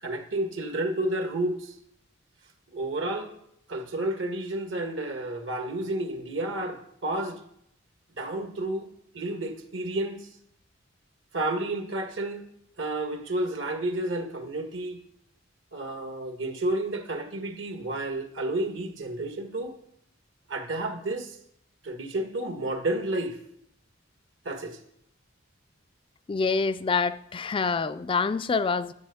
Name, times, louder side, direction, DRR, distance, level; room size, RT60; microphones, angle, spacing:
voice 1, 0.0-1.7 2.7-3.3 3.7-7.4 8.2-8.9 9.1-10.3 11.3-12.4 12.8-15.0 15.7-19.7 20.5-21.4 21.8-23.4 24.5-24.8, right 1 dB, 70° right, 1.7 m, -31 dB
voice 2, 26.3-28.9, left 4 dB, 25° left, 0.4 m, -26 dB
10.5 x 7.6 x 7.0 m
head